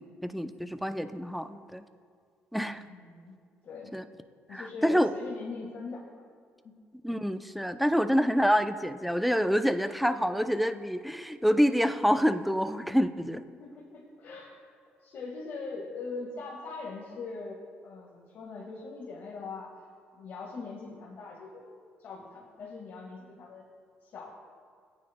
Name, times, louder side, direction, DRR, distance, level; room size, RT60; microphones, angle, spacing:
voice 1, 0.0-1.8 2.5-2.8 3.9-4.1 4.5-5.1 7.0-13.4, equal, ahead, 10 dB, 0.6 m, -27 dB
voice 2, 2.8-3.3 3.6-4.0 4.5-6.3 6.6-6.8 13.4-14.6 15.0-19.9 20.1-21.7 22.0-23.6 24.0-24.3, left 4 dB, 60° left, -2 dB, 1.6 m, -41 dB
18.5 x 9.4 x 2.2 m, 2.1 s
supercardioid pair, 75°, 4 cm